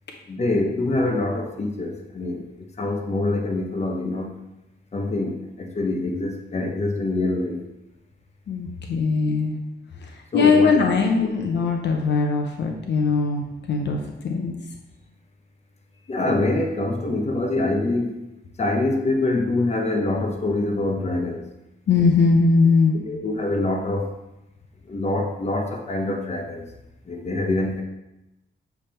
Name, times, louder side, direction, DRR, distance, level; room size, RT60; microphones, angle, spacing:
voice 1, 0.3-2.5 2.8-4.3 4.9-7.6 10.3-10.7 16.1-18.2 18.6-21.4 22.9-24.1 24.9-26.7 27.0-27.8, left 2 dB, 35° left, 2 dB, 0.9 m, -25 dB
voice 2, 8.5-9.6 9.9-14.5 21.9-22.9, left 4 dB, 70° left, 2 dB, 0.8 m, -20 dB
7.3 x 3.5 x 4.4 m, 0.96 s
cardioid pair, 100°, 19 cm